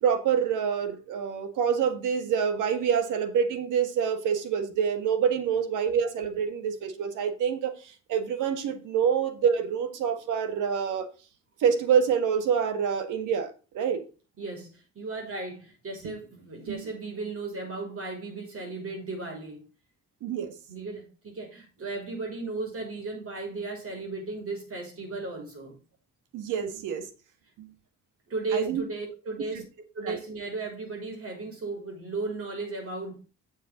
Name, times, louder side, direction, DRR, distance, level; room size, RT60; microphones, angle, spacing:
voice 1, 0.0-11.1 11.6-14.0 16.0-16.1 16.7-16.8 20.2-20.5 26.3-27.1 27.6-27.7 28.5-28.8 30.0-30.2, right 7 dB, 90° right, 1.7 m, -26 dB
voice 2, 14.4-19.7 20.7-25.7 28.3-29.6 29.9-33.2, right 3 dB, 50° right, 5.8 m, -35 dB
8.8 x 7.3 x 3.8 m
cardioid pair, 90°, 30 cm